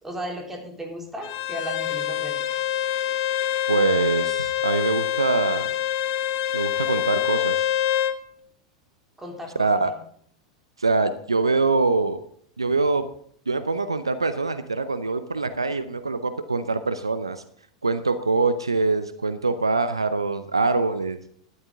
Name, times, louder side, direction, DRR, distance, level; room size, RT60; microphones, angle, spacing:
voice 1, 0.0-2.5 9.2-10.0, equal, 10° right, 1 dB, 3.6 m, -35 dB
Bowed string instrument, 1.2-8.2, left 11 dB, 55° left, 0.9 m, -25 dB
voice 2, 3.7-5.7 6.5-7.7 9.6-9.9 10.8-12.2 12.6-13.0 13.5-17.4 17.8-21.2, right 3 dB, 90° right, 11 dB, 0.6 m, -24 dB
12.5 x 11.0 x 3.6 m, 0.64 s
figure-of-eight pair, 90°, 3 cm